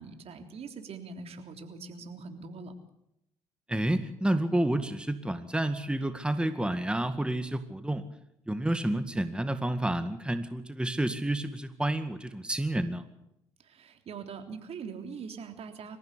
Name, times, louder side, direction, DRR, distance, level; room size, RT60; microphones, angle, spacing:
voice 1, 0.0-2.7 13.6-16.0, right 5 dB, 55° right, 6 dB, 3.5 m, -42 dB
voice 2, 3.7-8.0 8.5-13.0, right 1 dB, 10° right, 10 dB, 1.9 m, -30 dB
26.0 x 15.0 x 8.3 m, 0.81 s
hypercardioid pair, 55°, 12 cm